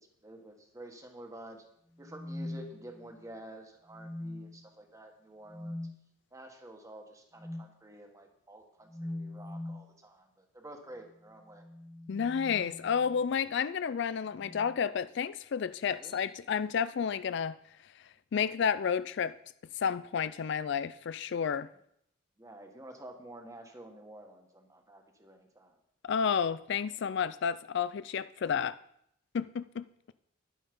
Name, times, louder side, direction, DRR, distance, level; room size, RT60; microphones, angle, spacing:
voice 1, 0.0-1.6 2.0-5.8 6.3-11.7 16.0-16.2 22.4-25.8, right 1 dB, 15° right, 1.6 m, -50 dB
sound 1, 2.0-3.3 3.9-4.7 5.5-6.0 7.4-7.7 8.9-9.9 11.4-13.2 14.3-14.8 16.0-16.3, left 1 dB, ahead, 0.9 m, -43 dB
voice 2, 12.1-17.6 18.3-19.3 19.8-21.7 26.0-28.8 29.3-30.1, left 7 dB, 65° left, 0.4 m, -31 dB
10.5 x 9.2 x 5.4 m
head